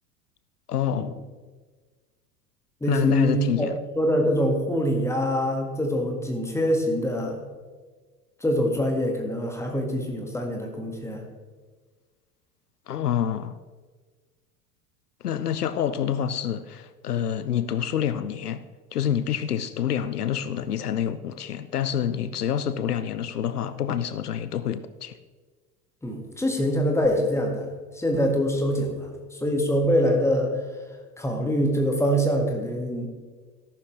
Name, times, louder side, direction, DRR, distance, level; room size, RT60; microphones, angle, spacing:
voice 1, 0.7-1.2 2.9-3.8 12.9-13.6 15.2-18.6 18.9-25.2, left 9 dB, 75° left, 0.7 m, -27 dB
voice 2, 2.8-3.7 4.0-7.4 8.4-11.3 26.0-27.7 28.0-29.1 29.4-30.5 31.2-33.1, equal, 5° left, 2.1 m, -24 dB
14.0 x 11.5 x 3.4 m
figure-of-eight pair, 80°, 47 cm